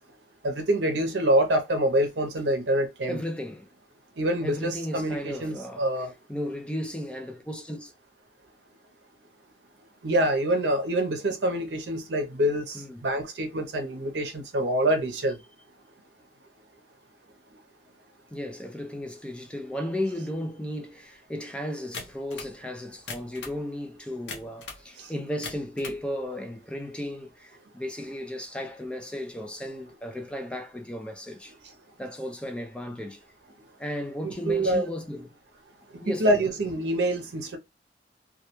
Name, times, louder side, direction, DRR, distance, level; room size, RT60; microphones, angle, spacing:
voice 1, 0.4-3.2 4.2-6.1 10.0-12.8 13.0-15.4 25.0-25.1 34.2-34.8 36.1-37.6, right 1 dB, 70° right, 0.6 m, -26 dB
voice 2, 3.1-3.7 4.4-5.9 6.3-7.9 12.7-13.0 18.3-31.5 32.0-33.2 33.8-35.3 36.0-36.4, left 1 dB, 5° left, 0.4 m, -35 dB
sound 1, 21.9-22.5 23.0-23.6 24.3-24.8 25.3-26.0, left 4 dB, 75° left, 0.7 m, -39 dB
2.3 x 2.2 x 2.9 m
head